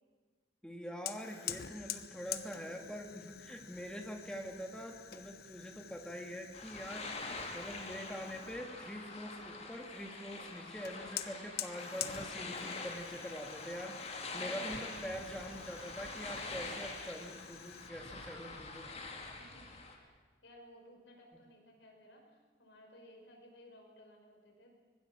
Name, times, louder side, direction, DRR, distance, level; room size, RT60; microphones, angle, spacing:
voice 1, 0.6-18.9, equal, 5° left, 2 dB, 2.3 m, -44 dB
Fire, 1.1-8.7 10.8-17.9, left 10 dB, 50° left, 1.1 m, -47 dB
sound 1, 6.5-20.0, left 3 dB, 35° left, 2.9 m, -45 dB
voice 2, 14.8-15.4 19.0-24.7, left 1 dB, 75° left, 1 dB, 5.5 m, -59 dB
25.0 x 20.0 x 7.6 m, 1.4 s
head